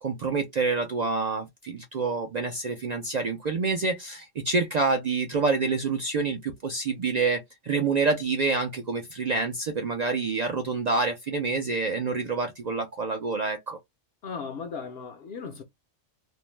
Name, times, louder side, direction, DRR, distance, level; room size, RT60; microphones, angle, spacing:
voice 1, 0.0-13.8, right 4 dB, 75° right, 0.4 m, -27 dB
voice 2, 14.2-15.6, left 5 dB, 65° left, 0.7 m, -36 dB
2.5 x 2.1 x 3.1 m
omnidirectional pair, 1.3 m